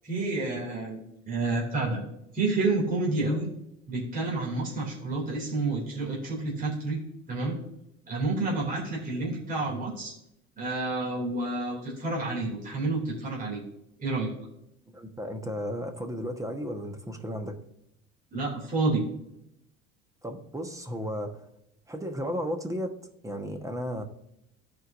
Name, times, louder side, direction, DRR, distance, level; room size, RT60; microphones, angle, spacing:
voice 1, 0.0-2.0 2.3-3.5 3.9-7.0 7.3-7.6 8.1-10.1 10.6-13.6 14.0-14.3 18.3-19.0, right 3 dB, 30° right, -3 dB, 2.6 m, -29 dB
voice 2, 14.9-17.6 20.2-21.5 21.9-23.0 23.2-24.0, equal, 10° right, 6 dB, 1.2 m, -34 dB
14.0 x 4.8 x 2.6 m, 0.80 s
supercardioid pair, 85°, 30 cm